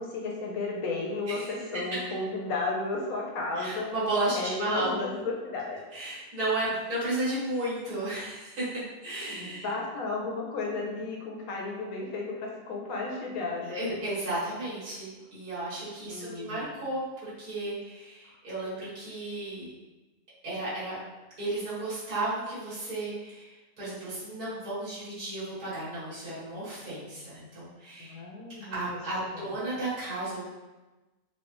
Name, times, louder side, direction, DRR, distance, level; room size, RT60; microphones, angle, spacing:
voice 1, 0.0-3.9 4.3-5.8 9.3-14.0 16.1-16.7 28.0-29.4, left 3 dB, 65° left, -1 dB, 1.1 m, -34 dB
voice 2, 3.6-5.2 5.9-8.7 9.0-9.7 13.7-19.7 20.4-21.0 21.4-28.2 28.7-30.4, right 2 dB, 65° right, -11 dB, 2.2 m, -33 dB
4.5 x 2.4 x 3.0 m, 1.1 s
omnidirectional pair, 1.7 m